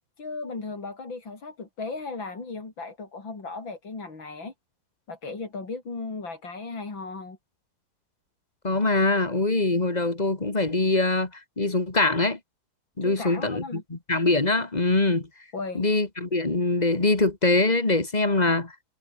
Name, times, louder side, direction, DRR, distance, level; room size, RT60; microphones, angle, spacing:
voice 1, 0.2-4.5 5.1-7.4 13.0-13.8 15.5-15.8, left 3 dB, 85° left, 5.3 m, -36 dB
voice 2, 8.6-12.4 13.0-15.3 15.7-18.7, left 2 dB, 20° left, 2.3 m, -23 dB
omnidirectional pair, 2.1 m